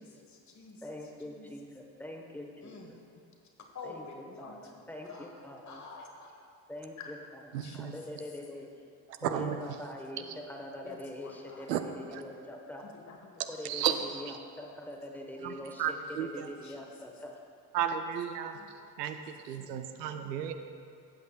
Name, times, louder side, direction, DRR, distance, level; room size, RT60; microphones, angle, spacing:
voice 1, 0.0-0.8 1.2-1.5 2.6-2.9 3.7-4.8 5.0-6.3 7.0-7.1 7.6-8.0 10.1-10.3 10.8-11.7 12.8-13.4 16.2-16.3 16.6-16.8 18.5-18.7, left 4 dB, 35° left, 2 dB, 1.4 m, -49 dB
voice 2, 0.8-2.8 3.8-5.8 6.7-8.7 9.2-12.9 13.5-17.4, left 1 dB, 5° left, 1 dB, 1.1 m, -44 dB
voice 3, 7.5-8.0 9.2-9.8 11.7-11.8 12.1-12.2 13.6-14.4 15.4-16.5 17.7-18.5 19.0-20.5, right 9 dB, 75° right, 8 dB, 0.6 m, -33 dB
13.0 x 8.2 x 2.3 m, 2.4 s
figure-of-eight pair, 55°, 49 cm